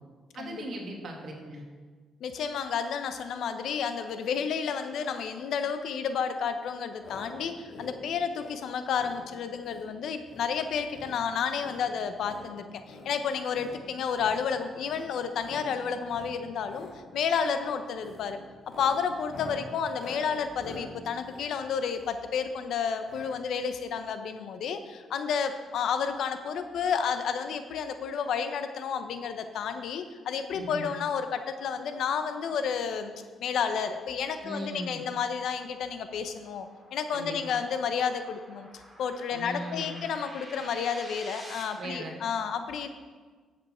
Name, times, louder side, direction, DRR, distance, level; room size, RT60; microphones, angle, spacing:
voice 1, 0.3-1.6 30.5-30.9 34.4-35.0 37.1-37.6 39.3-40.0 41.8-42.2, right 1 dB, 55° right, 0 dB, 2.2 m, -38 dB
voice 2, 2.2-16.9 17.1-18.4 18.8-33.1 33.4-38.7 39.0-42.9, left 6 dB, 75° left, 9 dB, 0.8 m, -31 dB
sound 1, 7.0-7.3 7.6-7.9 8.3-8.6 8.9-9.2 9.6-9.9 10.2-10.5 10.8-11.2 11.5-12.4 12.8-13.1 13.5-13.8 14.1-14.4 14.8-15.1 15.4-15.7 16.0-16.3 16.6-16.9 17.3-17.6 18.0-18.2 18.6-22.3 23.1-23.3 23.6-23.7 23.9-24.0, left 2 dB, 50° left, 3.3 m, -46 dB
sound 2, 35.5-41.6, right 1 dB, 10° right, 2.9 m, -49 dB
10.5 x 7.9 x 4.4 m, 1.5 s
cardioid pair, 90°, 0 cm